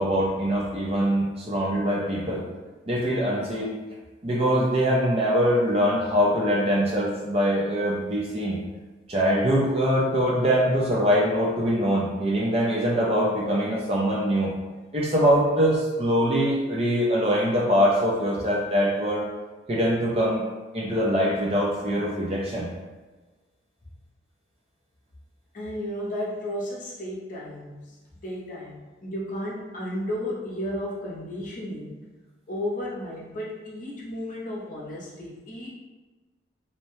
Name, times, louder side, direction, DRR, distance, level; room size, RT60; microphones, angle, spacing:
voice 1, 0.0-2.4 2.9-3.8 4.2-8.6 9.1-14.5 14.9-19.3 19.7-20.4 20.7-22.7, equal, 30° right, -3 dB, 0.4 m, -23 dB
voice 2, 25.5-32.0 32.5-35.7, left 1 dB, 40° left, -5 dB, 0.6 m, -33 dB
2.7 x 2.1 x 3.0 m, 1.3 s
head